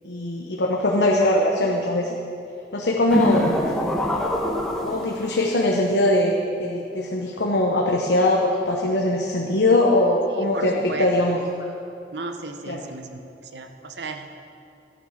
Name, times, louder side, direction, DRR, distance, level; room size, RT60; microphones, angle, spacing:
voice 1, 0.0-2.1 2.7-3.7 4.8-6.3 6.6-11.4 12.7-12.8, left 1 dB, 75° left, -1 dB, 1.1 m, -21 dB
sound 1, 3.1-5.5, equal, 5° left, 1.3 m, -25 dB
voice 2, 10.3-11.1 12.1-14.3, right 3 dB, 80° right, 7 dB, 1.0 m, -35 dB
12.0 x 9.2 x 6.5 m, 2.5 s
head